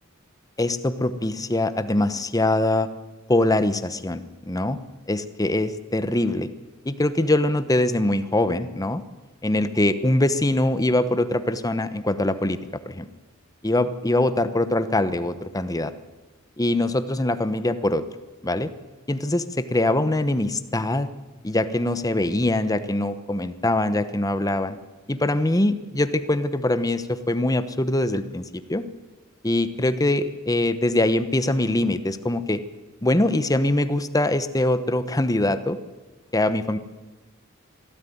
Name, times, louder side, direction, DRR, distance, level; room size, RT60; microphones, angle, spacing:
voice 1, 0.6-2.9 3.3-4.8 5.1-6.5 6.8-9.0 9.4-12.6 12.9-13.1 13.6-15.9 16.6-18.0 18.4-18.7 19.1-19.4 19.7-21.1 21.4-24.8 25.1-28.8 29.4-32.6 33.0-35.8 36.3-36.8, left 1 dB, 15° left, 12 dB, 1.0 m, -23 dB
23.5 x 13.5 x 9.4 m, 1.2 s
head